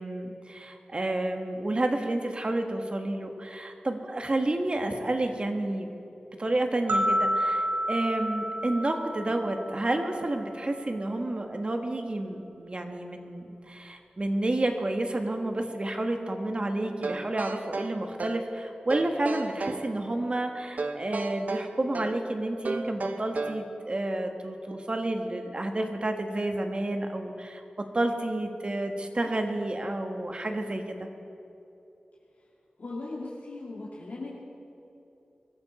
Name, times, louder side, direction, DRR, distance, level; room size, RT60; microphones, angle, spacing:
voice 1, 0.0-5.9 6.4-31.0, right 1 dB, 40° right, 4 dB, 1.6 m, -30 dB
sound 1, 6.9-10.0, equal, 90° right, 1.5 m, -29 dB
sound 2, 17.0-18.5 18.9-19.9 20.8-22.2 22.6-23.7, right 3 dB, 65° right, 1.0 m, -33 dB
voice 2, 32.8-34.5, left 2 dB, 65° left, -5 dB, 2.3 m, -38 dB
23.0 x 14.5 x 4.3 m, 2.9 s
wide cardioid pair, 75°, 3 cm